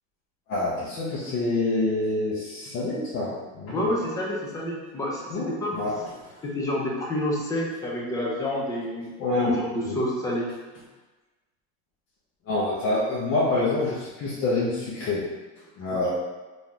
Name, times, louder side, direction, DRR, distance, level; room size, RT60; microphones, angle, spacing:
voice 1, 0.5-3.9 5.3-6.0 9.2-9.6 9.8-10.0 12.5-15.2 15.8-16.1, left 2 dB, 40° left, -8 dB, 0.7 m, -26 dB
voice 2, 3.7-5.8 6.4-9.1 9.4-10.5 15.9-16.1, left 1 dB, 10° left, -3 dB, 0.3 m, -28 dB
3.6 x 2.6 x 2.9 m, 1.2 s
cardioid pair, 160°, 31 cm